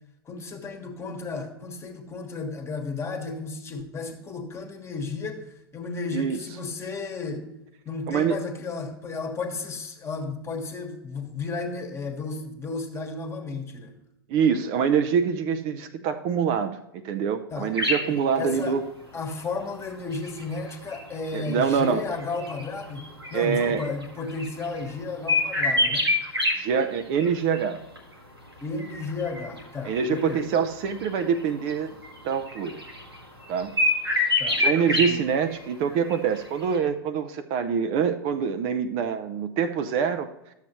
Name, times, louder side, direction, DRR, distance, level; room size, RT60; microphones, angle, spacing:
voice 1, 0.2-7.5 7.8-14.0 17.5-17.7 18.1-18.8 19.1-26.1 28.6-30.5 34.4-34.6 34.9-35.2, left 4 dB, 20° left, 5 dB, 1.3 m, -33 dB
voice 2, 8.1-8.4 14.3-16.8 17.0-18.8 21.3-22.0 23.3-23.8 26.5-27.8 29.8-31.9 32.2-32.8 33.5-33.7 34.6-40.3, right 7 dB, 45° right, 8 dB, 0.6 m, -25 dB
sound 1, 17.7-18.1 19.2-19.3 20.1-24.8 25.3-26.5 26.8-27.3 27.5-28.0 28.8-30.6 30.8-31.4 31.7-31.8 32.0-33.2 33.4-35.1 35.5-35.6 35.9-36.4 36.6-36.8, left 2 dB, 90° right, 1.6 m, -26 dB
11.5 x 7.3 x 3.0 m, 0.84 s
figure-of-eight pair, 90°, 13 cm